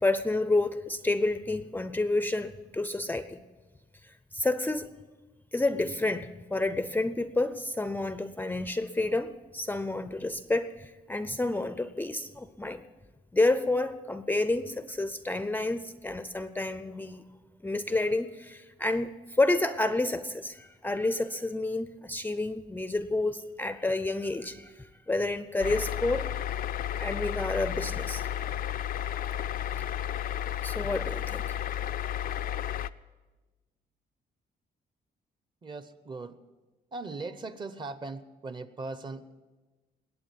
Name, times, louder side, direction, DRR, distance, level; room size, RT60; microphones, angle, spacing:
voice 1, 0.0-3.4 4.0-4.9 5.5-12.8 13.3-17.2 17.6-26.3 27.0-28.3 30.6-31.6, left 2 dB, 10° left, 11 dB, 0.5 m, -29 dB
sound 1, 25.6-32.9, left 10 dB, 60° left, 0.4 m, -32 dB
voice 2, 35.6-36.4 36.9-39.3, right 3 dB, 30° right, 13 dB, 0.8 m, -39 dB
21.0 x 8.7 x 7.2 m, 1.2 s
cardioid pair, 135°, 16 cm